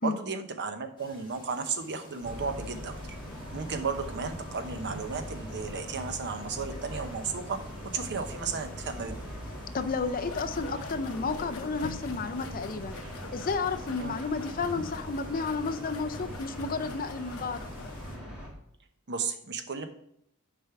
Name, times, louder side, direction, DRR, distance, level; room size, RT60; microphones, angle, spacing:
voice 1, 0.0-2.9 3.5-9.2 14.0-14.2 19.1-19.9, right 5 dB, 55° right, 7 dB, 0.9 m, -34 dB
sound 1, 1.0-18.2, left 2 dB, 20° left, 1.7 m, -54 dB
sound 2, 2.2-18.5, equal, 5° right, 2.7 m, -41 dB
voice 2, 9.7-13.0 13.3-17.6, left 4 dB, 40° left, 11 dB, 0.5 m, -32 dB
sound 3, 10.2-18.1, left 3 dB, 75° left, 1.0 m, -45 dB
6.8 x 5.2 x 5.7 m, 0.73 s
head